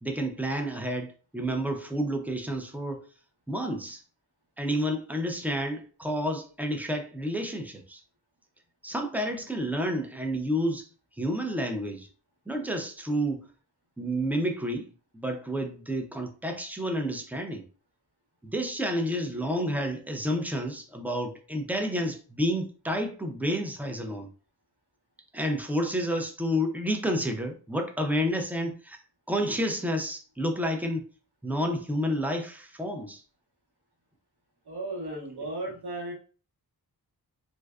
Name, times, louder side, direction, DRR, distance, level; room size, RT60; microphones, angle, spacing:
voice 1, 0.0-3.0 3.5-4.0 4.6-8.0 8.8-10.9 11.2-12.1 12.5-13.5 14.0-14.9 15.1-17.6 18.4-24.3 25.3-29.0 29.3-31.0 31.4-33.2, equal, 5° right, 0.3 m, -30 dB
voice 2, 34.6-36.1, right 2 dB, 80° right, 1.2 m, -35 dB
2.6 x 2.2 x 2.3 m
wide cardioid pair, 90°, 38 cm